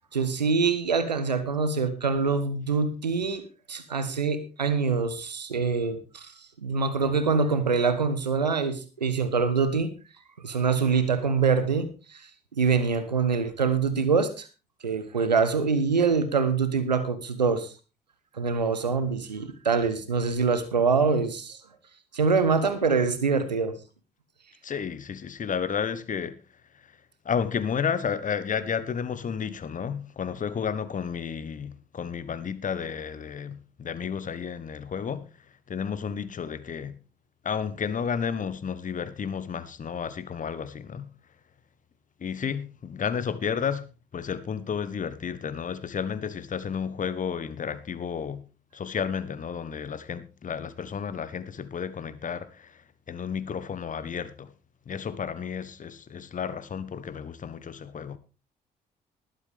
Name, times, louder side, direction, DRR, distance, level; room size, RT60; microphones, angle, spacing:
voice 1, 0.1-3.4 3.7-6.3 6.6-9.9 10.4-12.2 12.5-14.5 14.8-17.7 18.3-21.6 22.1-23.7, right 5 dB, 85° right, 1.1 m, -25 dB
voice 2, 24.6-26.4 27.2-35.3 35.7-37.0 37.4-41.1 42.2-43.9 44.1-48.4 48.7-52.8 53.1-54.5 54.9-58.2, left 7 dB, 40° left, 1.4 m, -32 dB
20.0 x 8.0 x 3.6 m
figure-of-eight pair, 45°, 21 cm